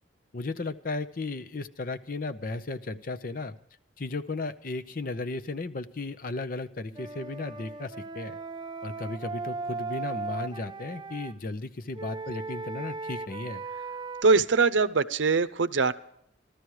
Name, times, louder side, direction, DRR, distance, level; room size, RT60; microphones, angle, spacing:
voice 1, 0.3-3.5 4.0-8.4 8.8-13.6, left 3 dB, 45° left, 11 dB, 0.7 m, -35 dB
Wind instrument woodwind instrument, 6.9-11.4 11.9-14.2, right 4 dB, 25° right, 0.4 m, -37 dB
voice 2, 14.2-15.9, right 4 dB, 80° right, 13 dB, 0.6 m, -22 dB
15.5 x 13.0 x 4.8 m, 0.71 s
head